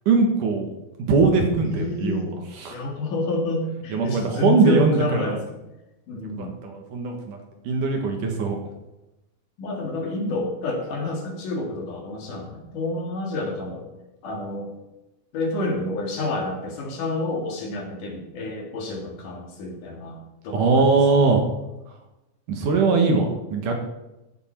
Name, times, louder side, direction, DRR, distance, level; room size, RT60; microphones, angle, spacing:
voice 1, 0.1-0.7 1.1-2.3 2.6-2.8 3.9-5.4 6.1-7.4 7.6-8.6 20.5-21.4 22.5-23.7, right 4 dB, 65° right, 3 dB, 2.7 m, -21 dB
voice 2, 1.7-2.3 2.7-5.6 6.1-6.6 9.6-13.9 14.2-14.7 15.3-21.0, left 2 dB, 60° left, 1 dB, 3.3 m, -29 dB
15.5 x 8.2 x 4.5 m, 0.95 s
omnidirectional pair, 4.4 m